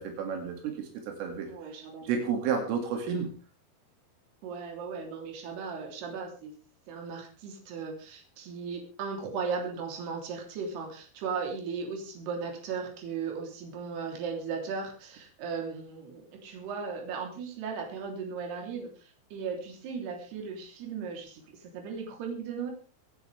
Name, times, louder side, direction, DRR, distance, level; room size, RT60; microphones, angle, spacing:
voice 1, 0.0-1.5 2.1-3.3, right 6 dB, 80° right, 3 dB, 5.0 m, -31 dB
voice 2, 1.5-2.1 4.4-6.5 6.9-22.7, right 5 dB, 55° right, 2 dB, 5.2 m, -37 dB
25.5 x 10.5 x 3.5 m, 0.37 s
omnidirectional pair, 5.8 m